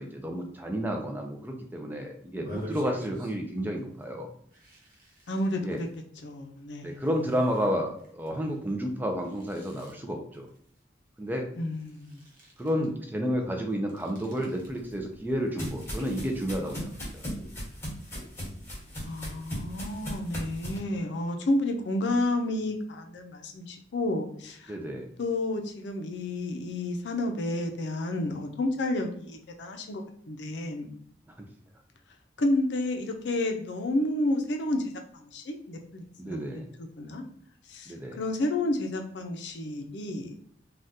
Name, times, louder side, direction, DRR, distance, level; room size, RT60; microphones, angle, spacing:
voice 1, 0.0-4.3 5.6-5.8 6.8-10.5 11.2-11.5 12.6-17.2 24.7-25.1 31.4-31.5 36.2-36.7 37.9-38.2, equal, 10° right, 2 dB, 0.4 m, -31 dB
sound 1, 2.3-3.6 3.9-4.1 4.5-6.0 6.6-11.4 11.6-12.9 13.7-15.0 15.3-16.5 16.9-17.6 18.0-20.2, left 1 dB, 50° right, 0.8 m, -49 dB
voice 2, 5.3-5.9 6.2-7.0 11.6-12.2 19.0-24.7 25.2-30.9 32.4-36.5 36.8-37.2 37.7-40.3, left 1 dB, 75° left, 4 dB, 0.5 m, -31 dB
sound 2, 14.7-20.8, equal, 15° left, 1.2 m, -38 dB
3.5 x 2.3 x 2.6 m, 0.63 s
head